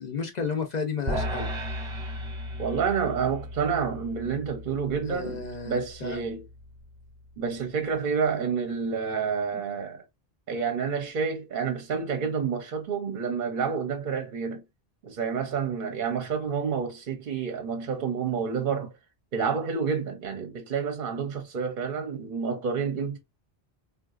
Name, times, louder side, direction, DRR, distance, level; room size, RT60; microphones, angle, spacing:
voice 1, 0.0-1.5 5.1-6.2, left 5 dB, 50° left, 0.6 m, -32 dB
sound 1, 1.1-7.4, equal, 30° right, 0.9 m, -36 dB
voice 2, 2.6-6.4 7.4-10.0 10.5-14.6 15.0-18.9 19.3-23.2, right 6 dB, 60° right, 0.7 m, -29 dB
3.8 x 2.3 x 2.3 m
omnidirectional pair, 1.0 m